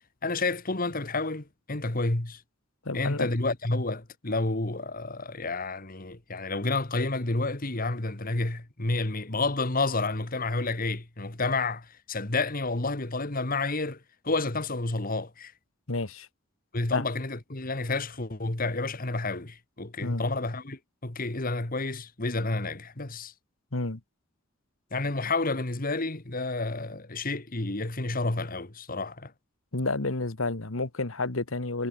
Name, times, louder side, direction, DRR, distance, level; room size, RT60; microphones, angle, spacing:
voice 1, 0.2-2.4 2.9-15.5 16.7-23.3 24.9-29.3, left 3 dB, 45° left, 1.9 m, -30 dB
voice 2, 2.8-3.3 15.9-16.3 16.9-17.0 20.0-20.2 23.7-24.0 29.7-31.9, left 3 dB, 75° left, 1.7 m, -30 dB
head